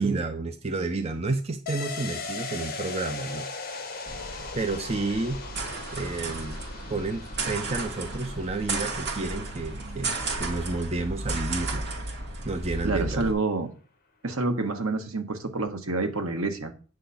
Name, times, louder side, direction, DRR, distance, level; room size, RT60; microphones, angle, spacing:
voice 1, 0.0-3.5 4.5-5.4 5.9-6.6 6.9-11.9 12.4-13.3, right 3 dB, 30° right, 0.6 m, -30 dB
sound 1, 1.7-11.1 11.4-11.5, left 4 dB, 40° left, 1.4 m, -39 dB
sound 2, 4.1-13.3, right 2 dB, 50° right, 1.9 m, -34 dB
voice 2, 12.8-13.7 14.2-16.7, right 3 dB, 75° right, 1.4 m, -28 dB
9.1 x 3.9 x 7.0 m
head